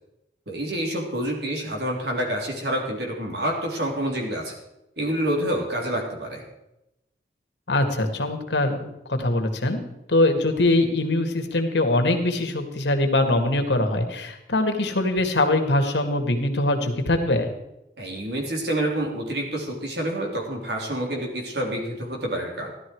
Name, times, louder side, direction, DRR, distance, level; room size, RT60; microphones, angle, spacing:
voice 1, 0.5-4.5 5.0-6.4 18.0-22.7, right 1 dB, 70° right, 0 dB, 3.7 m, -28 dB
voice 2, 7.7-8.8 9.1-9.8 10.1-17.5, left 2 dB, 85° left, 5 dB, 2.1 m, -22 dB
15.5 x 12.5 x 4.7 m, 0.89 s
head